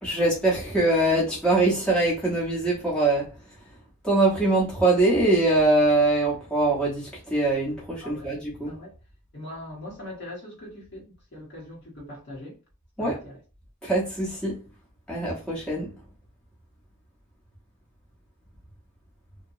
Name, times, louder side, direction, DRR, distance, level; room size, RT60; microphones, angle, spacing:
voice 1, 0.0-3.3 4.0-8.7 13.0-13.2 13.8-14.6 15.1-15.9, right 2 dB, 5° left, 0.9 m, -23 dB
voice 2, 8.0-8.4 8.7-8.9 9.3-12.6 13.0-13.4, left 1 dB, 50° left, 1.1 m, -41 dB
2.8 x 2.2 x 2.6 m
head